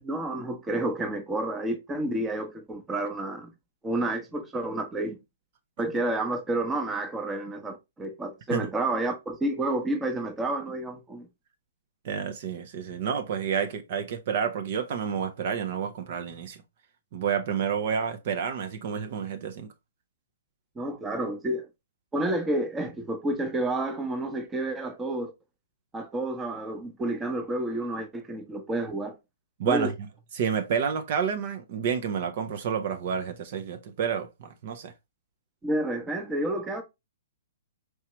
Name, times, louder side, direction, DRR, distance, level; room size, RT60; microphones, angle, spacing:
voice 1, 0.0-3.5 3.8-5.2 5.8-11.3 20.8-21.7 22.1-25.3 25.9-29.2 29.6-29.9 35.6-36.8, right 1 dB, 10° right, 0.8 m, -30 dB
voice 2, 12.0-16.6 17.1-19.7 29.6-29.9 30.3-34.9, right 7 dB, 50° right, 0.6 m, -29 dB
4.6 x 2.8 x 3.0 m
hypercardioid pair, 125°, 0 cm